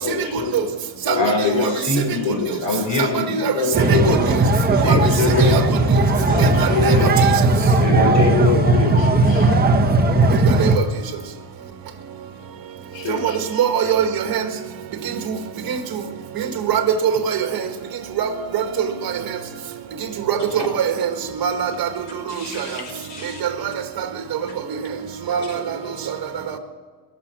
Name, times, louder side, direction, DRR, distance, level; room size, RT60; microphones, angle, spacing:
voice 1, 0.0-0.7 1.0-1.7 1.9-2.5 3.5-4.2 4.8-5.6 6.3-7.1 7.8-9.5 12.9-13.6 25.9-26.0, left 6 dB, 60° left, 2 dB, 3.3 m, -24 dB
voice 2, 1.1-3.5 4.8-5.2 6.1-6.4 7.6-8.4 20.4-20.7 22.3-23.4, left 2 dB, 35° left, 2 dB, 5.1 m, -26 dB
voice 3, 3.0-3.5 3.9-4.2 4.8-5.0 5.4-5.6 7.0-7.1 10.6-10.8 13.1-13.2 13.5-14.4 15.3-15.4 15.7-15.8 16.7-17.0 17.2-17.4 18.2-18.6 20.3-21.1 21.4-21.9 25.3-25.4, right 8 dB, 45° right, 6 dB, 2.1 m, -21 dB
sound 1, 3.7-10.8, right 2 dB, 20° right, 1.3 m, -17 dB
21.0 x 7.5 x 8.5 m, 1.5 s
cardioid pair, 125°, 49 cm